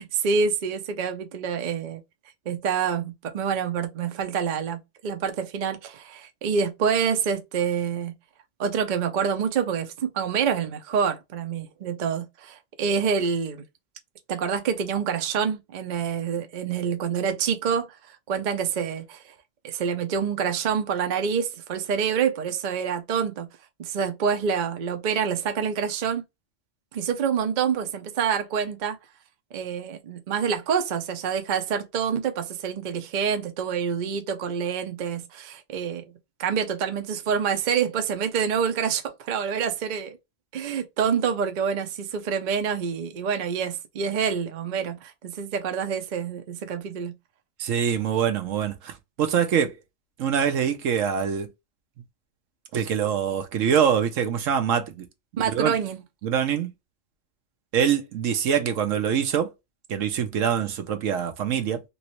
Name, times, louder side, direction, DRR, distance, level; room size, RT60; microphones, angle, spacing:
voice 1, 0.0-2.0 2.5-8.1 8.6-13.6 14.3-19.3 19.6-23.5 23.8-26.2 26.9-29.0 29.5-36.0 36.4-40.2 40.5-47.1 55.4-56.0, right 7 dB, 50° right, 0.6 m, -27 dB
voice 2, 47.6-49.8 50.2-51.5 52.7-55.1 55.5-55.7 56.2-56.7 57.7-59.5 59.9-61.8, right 8 dB, 80° right, 1.1 m, -24 dB
3.1 x 3.0 x 3.0 m
omnidirectional pair, 1.3 m